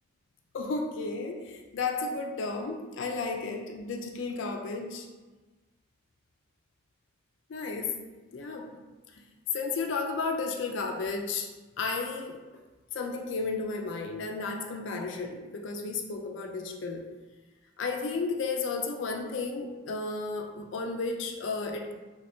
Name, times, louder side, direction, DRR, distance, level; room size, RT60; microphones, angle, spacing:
voice 1, 0.5-5.1 7.5-8.0 8.3-8.7 9.1-9.2 9.5-11.5 11.8-12.4 12.9-17.0 17.8-21.9, left 4 dB, 65° left, 3 dB, 0.4 m, -33 dB
3.2 x 2.6 x 3.4 m, 1.2 s
head